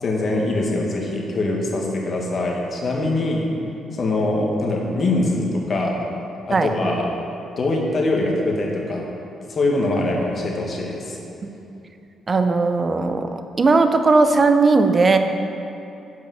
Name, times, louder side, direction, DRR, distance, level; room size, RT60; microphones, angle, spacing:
voice 1, 0.0-3.5 3.9-6.0 6.5-7.1 7.6-9.1 9.5-11.2, left 2 dB, 45° left, -1 dB, 1.5 m, -23 dB
voice 2, 12.3-15.2, right 3 dB, 35° right, 8 dB, 0.6 m, -17 dB
7.6 x 5.2 x 6.2 m, 2.8 s
cardioid pair, 90°, 0 cm